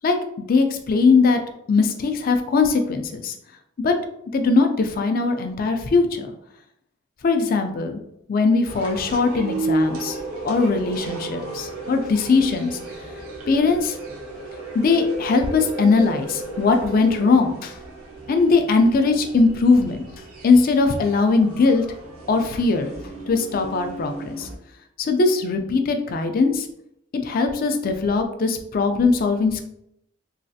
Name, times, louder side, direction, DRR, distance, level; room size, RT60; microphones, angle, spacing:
voice 1, 0.0-1.4 1.7-3.3 3.8-3.9 4.3-6.3 7.2-8.0 8.3-10.2 10.4-12.8 13.5-14.0 14.7-17.8 18.3-20.1 20.4-21.8 22.3-22.9 23.3-24.5 25.0-26.7 27.1-29.6, left 4 dB, 40° left, 6 dB, 0.3 m, -20 dB
sound 1, 8.6-24.6, right 2 dB, 90° right, 0.9 m, -33 dB
3.1 x 2.4 x 2.6 m, 0.75 s
head